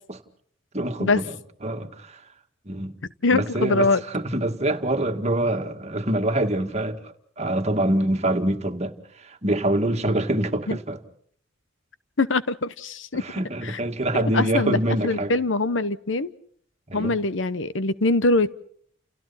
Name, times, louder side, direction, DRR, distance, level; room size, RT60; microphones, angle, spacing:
voice 1, 0.7-1.4 1.6-2.2 2.7-3.0 3.3-11.0 13.1-15.3 16.9-17.1, right 1 dB, 35° right, 2.1 m, -25 dB
voice 2, 3.2-4.0 10.7-10.8 12.2-13.2 13.6-13.8 14.1-16.3 16.9-18.5, left 3 dB, 70° left, 1.0 m, -23 dB
30.0 x 29.5 x 4.2 m
head